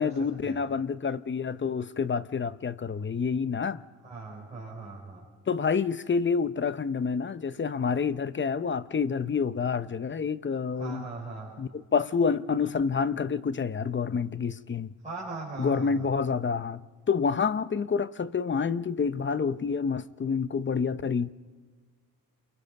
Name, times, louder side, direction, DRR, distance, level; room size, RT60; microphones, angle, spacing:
voice 1, 0.0-3.8 5.5-11.0 11.6-14.9 15.6-16.8 17.1-21.3, left 5 dB, 35° left, 0.7 m, -28 dB
voice 2, 4.0-5.2 10.8-11.5 15.0-16.1, right 3 dB, 20° right, 5.7 m, -39 dB
29.5 x 22.5 x 5.3 m
cardioid pair, 115°, 36 cm